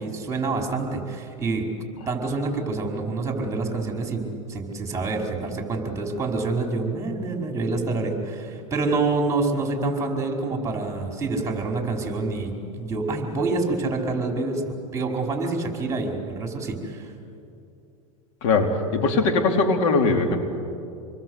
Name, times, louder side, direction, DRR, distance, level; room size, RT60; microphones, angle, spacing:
voice 1, 0.0-1.7 2.1-17.1, right 3 dB, 15° right, 2 dB, 5.2 m, -27 dB
voice 2, 18.4-20.4, left 3 dB, 65° left, 4 dB, 3.0 m, -21 dB
27.5 x 22.0 x 8.2 m, 2.6 s
hypercardioid pair, 100°, 18 cm